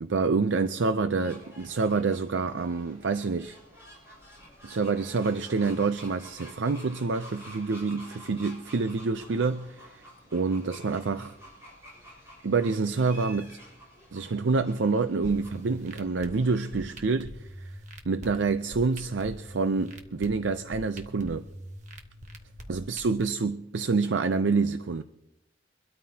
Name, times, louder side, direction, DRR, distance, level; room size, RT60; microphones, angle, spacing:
voice 1, 0.0-3.6 4.6-10.0 10.3-11.3 12.4-13.6 14.1-17.8 18.0-21.5 22.7-25.0, right 4 dB, 85° right, 0.5 m, -27 dB
sound 1, 1.2-16.9, equal, 15° right, 6.9 m, -50 dB
sound 2, 15.2-23.2, equal, 40° right, 1.2 m, -44 dB
24.0 x 13.0 x 2.8 m
head